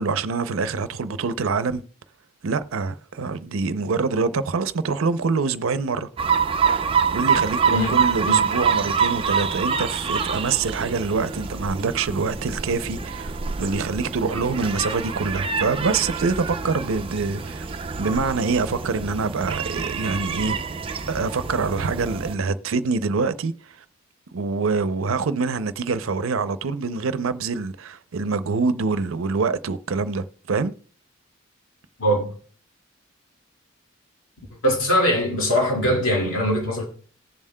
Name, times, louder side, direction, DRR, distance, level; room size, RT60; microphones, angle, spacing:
voice 1, 0.0-1.8 2.4-6.1 6.5-6.7 7.1-13.3 13.6-20.6 21.1-23.8 24.3-30.7, right 4 dB, 85° right, 0.5 m, -25 dB
sound 1, 6.2-22.3, right 6 dB, 25° right, 0.5 m, -26 dB
voice 2, 32.0-32.3 34.6-36.8, equal, 75° left, 2.2 m, -21 dB
18.5 x 7.3 x 2.2 m
head